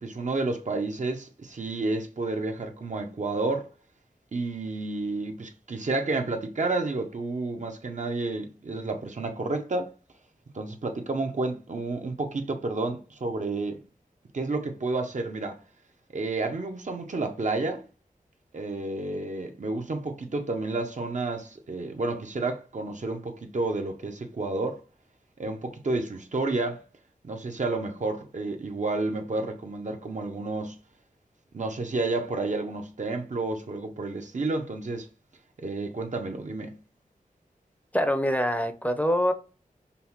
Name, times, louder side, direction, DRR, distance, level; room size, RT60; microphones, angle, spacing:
voice 1, 0.0-3.7 4.3-9.9 10.5-13.8 14.3-15.6 16.1-17.8 18.5-24.8 25.4-26.8 27.2-30.7 31.5-35.1 35.6-36.7, right 3 dB, 55° right, 0.8 m, -30 dB
voice 2, 37.9-39.3, equal, 10° left, 0.6 m, -24 dB
5.4 x 2.1 x 2.9 m
wide cardioid pair, 55°, 15 cm